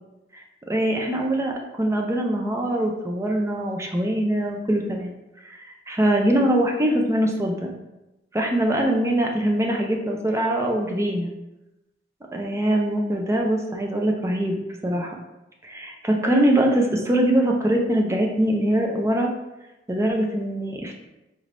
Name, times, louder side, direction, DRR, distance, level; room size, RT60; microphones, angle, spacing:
voice 1, 0.3-5.1 5.4-7.7 8.3-11.3 12.3-14.6 14.8-15.2 15.6-19.3 19.9-20.9, right 1 dB, 15° right, 1 dB, 0.5 m, -23 dB
4.2 x 3.3 x 2.5 m, 0.98 s
head